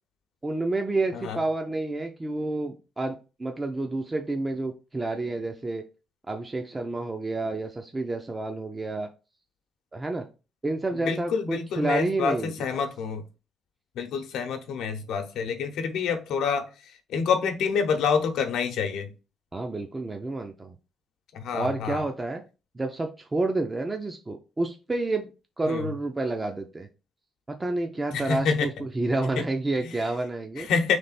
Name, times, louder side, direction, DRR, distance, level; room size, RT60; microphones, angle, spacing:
voice 1, 0.4-5.8 6.3-9.1 9.9-10.3 10.6-12.8 19.5-20.8 21.5-22.4 22.7-25.3 25.6-26.9 27.5-30.7, right 2 dB, 20° right, 0.5 m, -29 dB
voice 2, 11.0-13.2 14.0-16.7 17.1-19.1 21.3-22.0 25.7-25.8 28.1-28.7 29.4-29.5 29.8-29.9 30.6-31.0, left 6 dB, 85° left, 0.8 m, -27 dB
3.6 x 3.3 x 4.1 m
cardioid pair, 120°, 0 cm